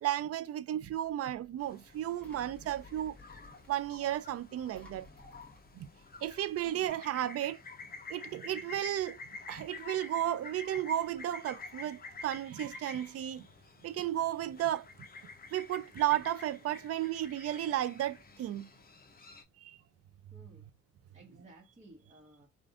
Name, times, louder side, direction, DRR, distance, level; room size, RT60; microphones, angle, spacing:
voice 1, 0.0-3.1 3.7-5.1 5.7-5.9 6.2-7.6 8.1-9.2 9.5-13.5 13.8-14.9 15.5-18.7 19.6-19.8, right 12 dB, 50° right, 0.4 m, -33 dB
Engine, 0.8-6.9, left 2 dB, 5° left, 1.5 m, -58 dB
sound 1, 1.6-19.4, left 4 dB, 30° left, 0.8 m, -50 dB
voice 2, 20.3-20.7 21.1-22.5, right 2 dB, 20° right, 1.2 m, -56 dB
3.3 x 2.5 x 2.5 m
cardioid pair, 90°, 30 cm